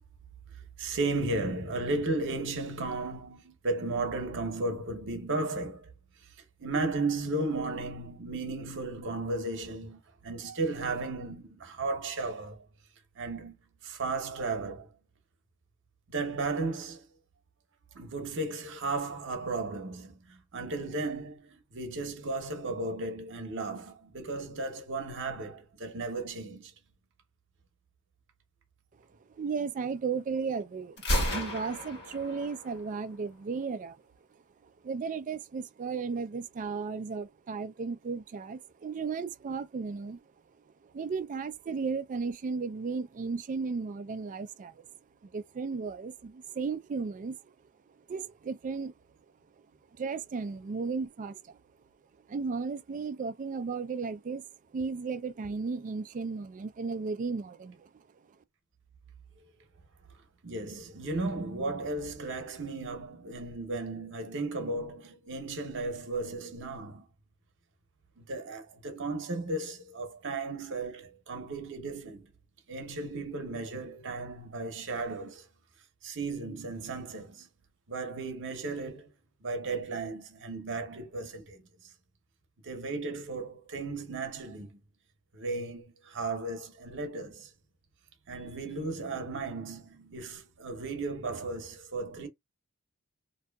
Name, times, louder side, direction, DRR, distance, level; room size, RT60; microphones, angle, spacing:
voice 1, 0.8-5.9 6.6-12.7 13.2-13.6 13.8-14.9 16.1-17.0 17.9-26.7 60.4-67.1 68.2-72.3 72.7-75.5 76.0-77.5 77.9-79.1 79.4-81.6 82.6-84.8 85.3-87.5 88.3-92.3, right 3 dB, 55° right, 0.9 m, -35 dB
voice 2, 29.4-31.0 31.3-34.0 34.6-40.2 40.8-44.9 45.2-47.5 48.1-48.9 49.9-51.6 52.3-54.4 54.7-57.9, right 5 dB, 35° right, 0.3 m, -35 dB
Gunshot gunfire, 31.0-32.9, equal, 50° left, 1.3 m, -32 dB
2.7 x 2.4 x 2.2 m
head